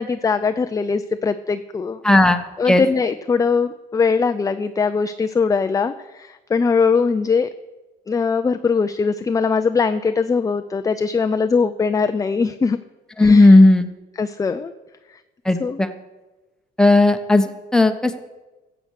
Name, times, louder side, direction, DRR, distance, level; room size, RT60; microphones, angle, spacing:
voice 1, 0.0-2.0 2.6-7.5 8.1-12.8 13.2-13.6 14.2-14.7 15.1-15.2 15.6-15.8, left 5 dB, 20° left, 9 dB, 0.5 m, -21 dB
voice 2, 2.0-2.4 2.7-2.8 13.2-13.9 15.4-15.9 16.8-18.2, left 2 dB, 5° left, 7 dB, 1.0 m, -14 dB
14.5 x 7.9 x 6.5 m, 1.1 s
cardioid pair, 110°, 17 cm